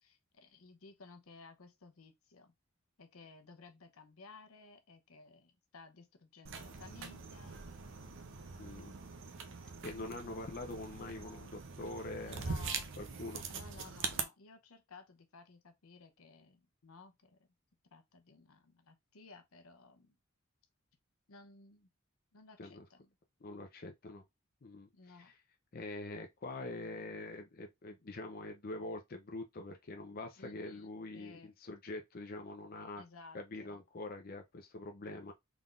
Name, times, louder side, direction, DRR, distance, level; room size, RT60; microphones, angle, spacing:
voice 1, 0.0-2.5 3.0-7.6 10.0-10.1 12.2-12.9 13.5-17.4 17.9-20.1 21.3-21.9 22.3-23.1 24.9-25.3 30.4-30.9 31.1-31.5 33.0-33.8, left 4 dB, 75° left, 0.8 m, -57 dB
sound 1, 6.5-14.2, right 5 dB, 60° right, 0.6 m, -43 dB
voice 2, 8.6-9.0 9.8-12.7 13.0-13.5 22.6-22.8 23.4-24.2 24.6-24.9 25.2-25.3 25.7-33.0 33.3-35.3, left 2 dB, 45° left, 0.6 m, -44 dB
3.8 x 3.5 x 2.5 m
head